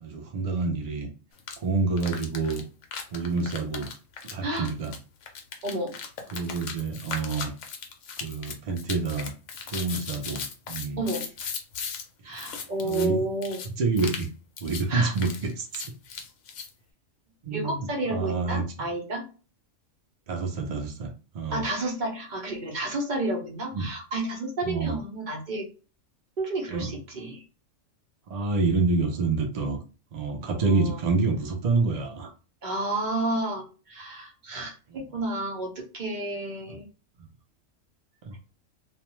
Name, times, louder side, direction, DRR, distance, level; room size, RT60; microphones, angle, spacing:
voice 1, 0.0-1.1 1.6-2.6 3.1-3.9 4.3-4.9 6.3-7.5 8.2-9.3 9.7-11.0 12.2-12.3 12.8-13.2 13.8-14.3 14.6-15.8 17.4-18.6 20.3-21.6 23.7-23.9 24.6-25.0 26.7-26.9 28.3-29.8 30.1-32.3 36.7-36.8 38.2-38.3, right 3 dB, 85° right, 3 dB, 0.3 m, -27 dB
sound 1, 1.4-1.6 2.0-12.0 12.3-13.1 13.4-13.7 14.0-14.3 14.6-14.8 15.1-16.7, left 6 dB, 70° left, 0.9 m, -37 dB
voice 2, 5.6-6.0 11.0-11.2 12.2-13.6 14.9-15.1 17.5-19.2 21.5-25.7 26.4-27.4 30.6-31.0 32.6-36.9, right 2 dB, 45° right, 0 dB, 0.7 m, -31 dB
2.4 x 2.1 x 3.0 m, 0.34 s
omnidirectional pair, 1.4 m